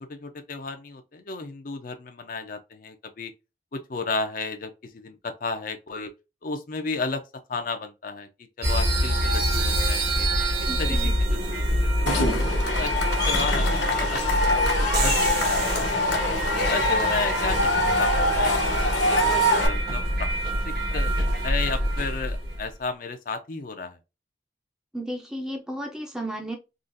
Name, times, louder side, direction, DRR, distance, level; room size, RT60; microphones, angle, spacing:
voice 1, 0.0-3.3 3.7-6.1 6.4-7.2 7.5-8.3 8.6-10.3 10.6-11.4 12.0-16.3 16.7-17.7 18.0-19.2 19.5-20.3 20.6-21.1 21.4-24.0, left 4 dB, 45° left, 0.5 m, -33 dB
sound 1, 8.6-22.6, right 1 dB, 55° right, 1.3 m, -26 dB
voice 2, 10.7-11.1 24.9-26.6, right 1 dB, 5° right, 0.5 m, -33 dB
Cheering / Crowd, 12.1-19.7, left 1 dB, 75° left, 1.2 m, -24 dB
3.7 x 2.4 x 2.5 m
head